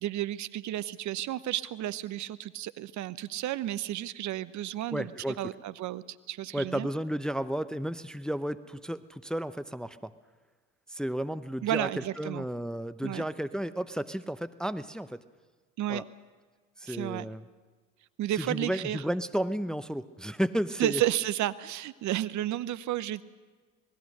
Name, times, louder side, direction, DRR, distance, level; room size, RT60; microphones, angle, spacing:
voice 1, 0.0-5.1 5.4-6.9 11.6-12.5 13.0-13.2 15.8-16.0 16.9-17.3 18.2-19.0 20.8-23.2, right 13 dB, 45° right, 16 dB, 0.9 m, -32 dB
voice 2, 4.9-5.4 6.5-10.1 10.9-15.2 15.9-16.0 16.8-17.4 18.4-21.0, equal, ahead, 13 dB, 0.7 m, -33 dB
27.5 x 20.0 x 6.6 m, 1.4 s
hypercardioid pair, 65°, 40 cm